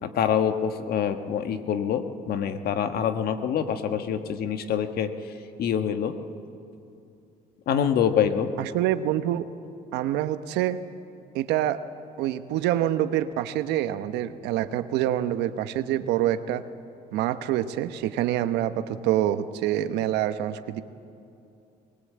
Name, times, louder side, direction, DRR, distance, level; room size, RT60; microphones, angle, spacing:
voice 1, 0.0-5.1 5.6-6.2 7.7-8.5, left 8 dB, 65° left, 8 dB, 1.4 m, -25 dB
voice 2, 8.6-9.4 9.9-10.8 11.3-11.8 12.2-16.6 17.1-20.8, right 12 dB, 90° right, 11 dB, 0.9 m, -26 dB
20.0 x 19.5 x 8.6 m, 2.6 s
cardioid pair, 110°, 17 cm